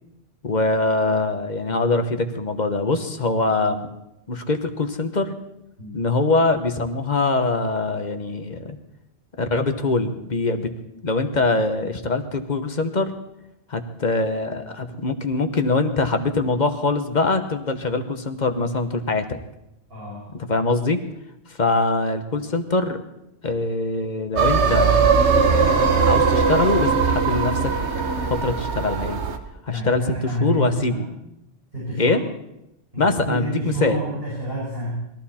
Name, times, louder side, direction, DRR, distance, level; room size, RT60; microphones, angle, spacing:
voice 1, 0.4-3.9 4.3-5.4 5.9-8.8 9.4-10.7 11.0-13.1 13.7-19.3 20.3-21.0 21.5-23.0 23.4-25.1 25.5-27.7 28.3-29.2 29.6-31.0 32.0-32.2 33.0-34.0, left 3 dB, 45° left, 8 dB, 1.2 m, -23 dB
voice 2, 19.9-20.3 29.7-31.1 31.7-32.2 32.9-35.0, right 1 dB, 60° right, -7 dB, 5.5 m, -29 dB
sound 1, 24.4-29.4, right 5 dB, 85° right, 1.4 m, -19 dB
21.0 x 14.5 x 4.3 m, 0.85 s
omnidirectional pair, 1.1 m